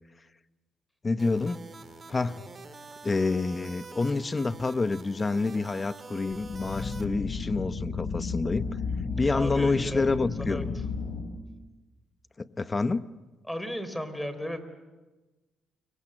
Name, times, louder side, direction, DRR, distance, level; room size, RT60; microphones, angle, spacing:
voice 1, 1.0-1.6 2.1-2.4 3.0-8.7 9.2-10.7 12.4-13.0, left 3 dB, 25° left, 13 dB, 1.0 m, -28 dB
sound 1, 1.2-7.1, right 4 dB, 35° right, 2.6 m, -46 dB
sound 2, 6.3-11.2, left 4 dB, 60° left, 6.3 m, -33 dB
voice 2, 9.1-10.8 13.5-14.6, equal, 5° left, 11 dB, 3.5 m, -36 dB
29.5 x 23.5 x 7.8 m, 1.2 s
cardioid pair, 90°, 0 cm